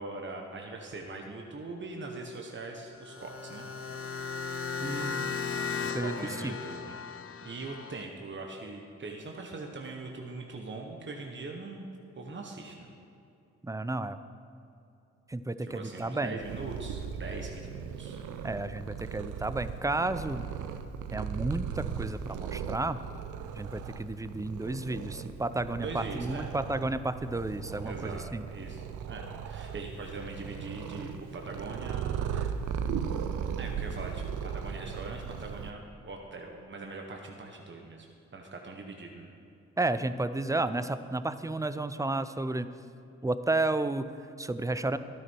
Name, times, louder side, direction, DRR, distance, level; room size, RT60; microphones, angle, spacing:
voice 1, 0.0-3.7 6.0-7.0 7.4-11.9 12.1-12.9 15.6-18.2 25.8-26.5 27.8-28.2 28.5-32.5 33.6-38.1 38.3-39.3, right 3 dB, 40° right, 1 dB, 1.3 m, -41 dB
sound 1, 3.0-8.0, left 5 dB, 50° left, 0.7 m, -36 dB
voice 2, 4.8-5.3 5.9-6.1 6.4-6.6 13.6-14.2 15.3-16.4 18.4-20.5 21.1-23.0 23.5-28.4 39.8-42.7 43.2-45.0, right 2 dB, 10° right, 12 dB, 0.5 m, -32 dB
Purr, 16.4-35.7, right 7 dB, 85° right, 0.7 m, -37 dB
12.5 x 10.5 x 4.6 m, 2.8 s
supercardioid pair, 55°, 29 cm